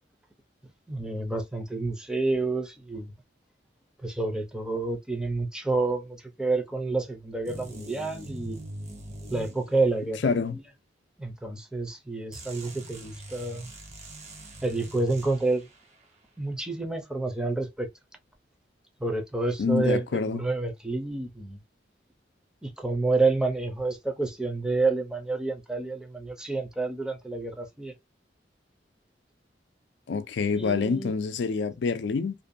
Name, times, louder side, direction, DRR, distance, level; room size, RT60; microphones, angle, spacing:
voice 1, 0.9-3.1 4.0-8.6 9.3-10.6 11.2-13.7 14.6-15.7 16.4-17.9 19.0-21.6 22.6-27.9 30.5-31.1, right 3 dB, 5° right, 0.5 m, -29 dB
sound 1, 7.4-10.3 12.3-15.8, right 1 dB, 40° right, 0.7 m, -43 dB
voice 2, 10.2-10.6 19.6-20.4 30.1-32.3, left 5 dB, 75° left, 0.4 m, -27 dB
2.6 x 2.2 x 2.5 m
head